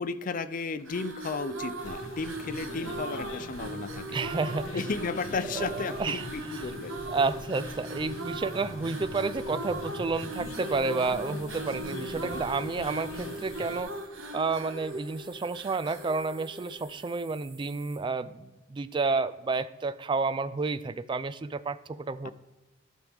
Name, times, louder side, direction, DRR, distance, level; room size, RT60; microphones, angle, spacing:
voice 1, 0.0-4.2 4.7-7.0 12.1-12.4 22.2-22.3, left 4 dB, 40° left, 13 dB, 0.5 m, -34 dB
sound 1, 0.8-17.2, right 2 dB, 75° right, 1.1 m, -39 dB
sound 2, 1.8-13.8, left 1 dB, 85° left, 1.1 m, -42 dB
voice 2, 4.1-4.8 5.5-6.2 7.1-14.0 14.3-22.3, right 4 dB, 25° right, 15 dB, 0.3 m, -30 dB
sound 3, 10.3-18.0, right 4 dB, 55° right, 2.9 m, -55 dB
11.5 x 6.3 x 3.5 m, 1.2 s
head